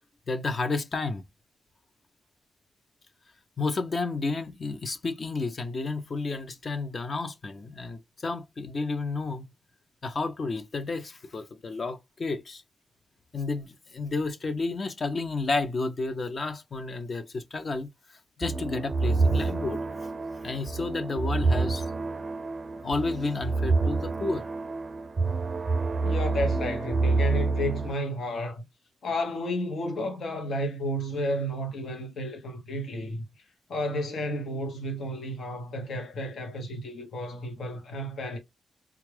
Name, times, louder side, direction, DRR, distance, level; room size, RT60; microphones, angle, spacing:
voice 1, 0.3-1.2 3.6-9.4 10.0-12.6 13.3-17.9 18.4-19.8 20.4-21.9 22.8-24.4, left 3 dB, 50° left, 0.7 m, -31 dB
sound 1, 18.4-27.9, right 3 dB, 45° right, 0.4 m, -27 dB
voice 2, 26.0-28.6 29.0-33.2 33.7-38.4, equal, 80° left, 0.9 m, -32 dB
3.5 x 2.3 x 3.2 m
cardioid pair, 70°, 0 cm